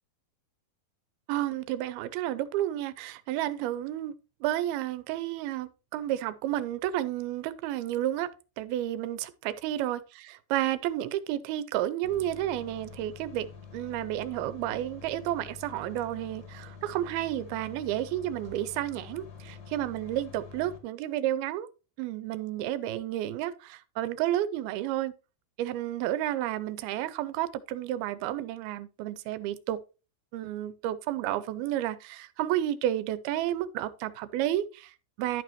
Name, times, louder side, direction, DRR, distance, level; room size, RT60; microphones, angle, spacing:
voice 1, 1.3-4.1 4.4-8.3 8.6-13.5 13.7-21.7 22.0-25.1 25.6-29.8 30.3-35.4, right 13 dB, 85° right, 2.5 m, -31 dB
sound 1, 12.0-20.8, left 6 dB, 55° left, 1.1 m, -47 dB
11.5 x 6.1 x 3.0 m
omnidirectional pair, 4.4 m